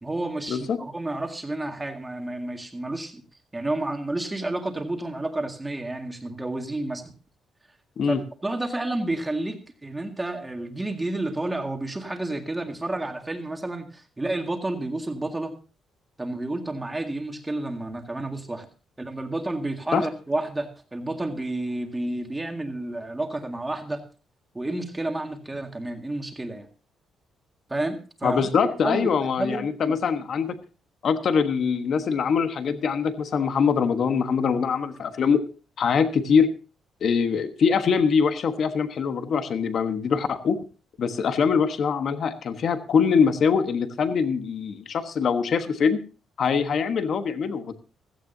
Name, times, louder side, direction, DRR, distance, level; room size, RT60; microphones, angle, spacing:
voice 1, 0.0-3.2 3.5-7.1 8.1-15.5 16.2-18.7 19.0-24.0 24.5-26.7 27.7-28.4 28.8-29.1 29.4-30.0, right 2 dB, 10° right, 4 dB, 2.0 m, -30 dB
voice 2, 28.2-30.6 31.0-35.4 35.8-36.5 37.0-40.6 41.0-46.0 46.4-47.7, left 6 dB, 50° left, 9 dB, 1.3 m, -23 dB
16.0 x 15.0 x 2.7 m, 0.34 s
cardioid pair, 150°, 0 cm